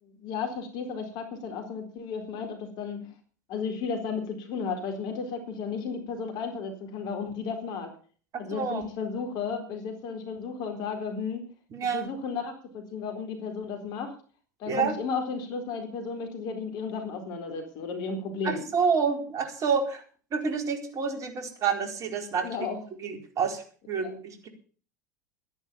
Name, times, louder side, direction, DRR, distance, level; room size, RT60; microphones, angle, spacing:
voice 1, 0.0-3.1 3.5-7.9 8.4-11.4 11.9-14.1 14.6-18.6 22.4-22.9 23.9-24.1, left 5 dB, 50° left, 5 dB, 4.1 m, -34 dB
voice 2, 8.5-8.9 11.7-12.1 14.7-14.9 18.4-20.0 20.3-22.5 23.0-24.5, right 6 dB, 35° right, 5 dB, 4.3 m, -28 dB
12.5 x 11.0 x 7.1 m, 0.41 s
figure-of-eight pair, 80°, 9 cm